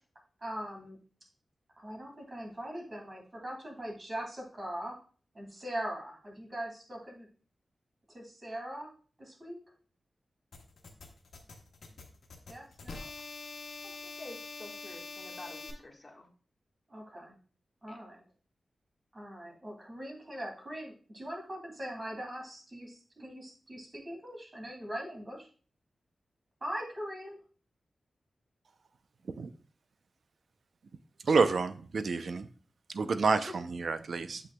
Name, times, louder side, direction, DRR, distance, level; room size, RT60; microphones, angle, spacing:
voice 1, 0.4-1.0 1.8-4.9 5.3-7.3 8.1-8.9 9.2-9.6 12.5-13.1 16.9-17.3 17.8-18.2 19.1-25.5 26.6-27.4 33.3-33.5, equal, 35° right, 0 dB, 2.3 m, -41 dB
sound 1, 10.5-15.7, left 3 dB, 85° left, 1.1 m, -45 dB
voice 2, 13.8-16.3 17.9-18.0, left 2 dB, 30° left, 0 dB, 1.4 m, -49 dB
voice 3, 31.3-32.5 32.9-34.4, right 4 dB, 70° right, 10 dB, 0.5 m, -28 dB
7.8 x 5.9 x 2.2 m, 0.40 s
wide cardioid pair, 110°, 0 cm